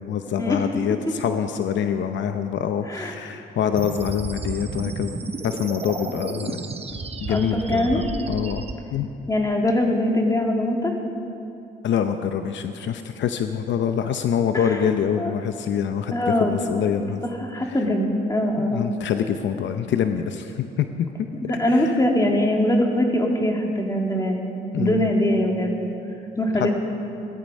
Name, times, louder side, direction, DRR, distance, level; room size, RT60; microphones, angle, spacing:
voice 1, 0.0-6.6 7.2-8.6 8.9-9.1 11.8-17.2 17.7-17.8 18.6-20.9 21.2-22.0 24.7-25.1 26.5-26.7, left 8 dB, 65° left, 8 dB, 0.7 m, -25 dB
sound 1, 3.8-8.7, right 4 dB, 30° right, 1.0 m, -33 dB
voice 2, 7.3-8.0 9.3-10.9 14.5-14.8 15.2-15.3 16.1-16.5 17.0-18.9 21.4-24.4 24.8-25.7 26.4-26.7, left 1 dB, 15° left, 1 dB, 2.2 m, -22 dB
16.5 x 13.0 x 5.3 m, 2.8 s
cardioid pair, 90°, 20 cm